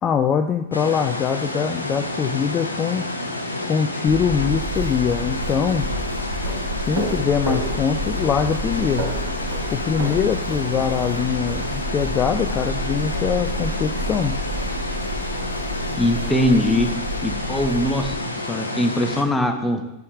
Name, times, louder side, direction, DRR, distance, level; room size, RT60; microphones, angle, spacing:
voice 1, 0.0-3.1 3.6-5.9 6.9-9.1 9.7-14.4, left 7 dB, 25° left, 5 dB, 0.5 m, -23 dB
sound 1, 0.7-19.2, left 1 dB, 85° left, 0.8 m, -29 dB
sound 2, 4.1-18.1, right 1 dB, 55° right, 3.1 m, -30 dB
voice 2, 16.0-16.9 17.2-18.1 18.4-19.8, left 1 dB, 10° left, 5 dB, 1.0 m, -21 dB
10.5 x 8.3 x 2.4 m, 0.94 s
figure-of-eight pair, 90°, 0 cm